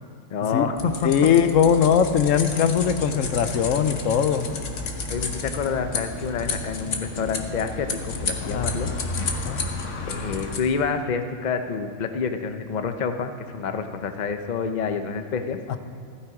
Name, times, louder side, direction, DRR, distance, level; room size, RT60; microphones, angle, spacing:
voice 1, 0.3-1.1 5.1-8.9 10.1-15.6, left 5 dB, 40° left, 7 dB, 0.8 m, -28 dB
sound 1, 0.8-10.6, left 3 dB, 70° left, 1.4 m, -31 dB
voice 2, 1.0-4.5 8.4-8.7 9.4-9.6 15.7-15.8, left 7 dB, 90° left, 10 dB, 1.1 m, -20 dB
15.5 x 10.0 x 4.9 m, 2.4 s
omnidirectional pair, 1.3 m